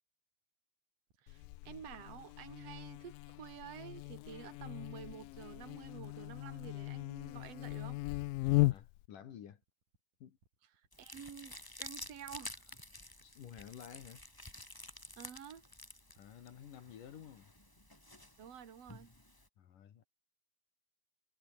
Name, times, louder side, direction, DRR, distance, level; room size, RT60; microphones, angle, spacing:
sound 1, 1.1-18.8, right 3 dB, 65° right, 9.3 m, -74 dB
voice 1, 1.2-8.0 11.0-12.6 15.2-15.7 18.4-19.1, right 8 dB, 45° right, 3.5 m, -50 dB
Buzz, 1.3-9.1, left 20 dB, 90° left, 2.3 m, -37 dB
voice 2, 8.7-9.6 10.2-10.4 13.2-14.2 16.2-17.5 19.6-20.0, left 9 dB, 70° left, 3.5 m, -52 dB
sound 2, 10.9-19.5, left 1 dB, 5° left, 2.8 m, -51 dB
omnidirectional pair, 4.0 m